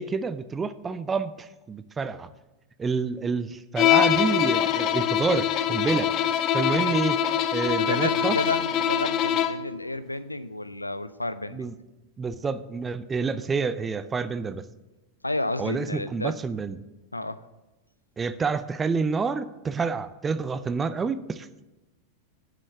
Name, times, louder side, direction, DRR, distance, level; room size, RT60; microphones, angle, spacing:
voice 1, 0.0-2.3 2.8-6.1 6.5-7.2 7.5-8.4 11.5-11.7 12.2-14.7 15.6-16.8 18.2-21.7, right 4 dB, 15° right, 13 dB, 0.4 m, -28 dB
Bowed string instrument, 3.8-9.7, left 10 dB, 35° left, 0.5 m, -24 dB
voice 2, 7.7-11.7 15.2-16.4 17.1-17.4, left 2 dB, 85° left, 14 dB, 0.4 m, -31 dB
7.5 x 6.3 x 7.6 m, 1.1 s
figure-of-eight pair, 90°, 0 cm